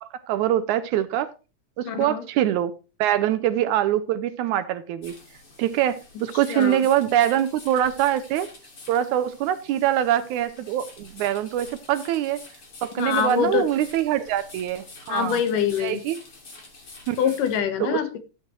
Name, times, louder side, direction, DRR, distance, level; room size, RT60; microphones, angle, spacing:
voice 1, 0.0-1.3 1.8-2.7 3.0-5.1 5.6-8.5 8.9-12.4 12.8-15.4 15.8-16.2 17.1-17.2 17.8-18.2, right 11 dB, 80° right, 12 dB, 1.9 m, -24 dB
voice 2, 1.9-2.2 6.5-6.8 13.0-13.7 15.1-16.0 17.2-18.2, left 8 dB, 80° left, 10 dB, 2.7 m, -24 dB
sound 1, 5.0-17.6, left 2 dB, 35° left, 2.7 m, -47 dB
13.0 x 8.4 x 3.0 m, 0.32 s
omnidirectional pair, 3.7 m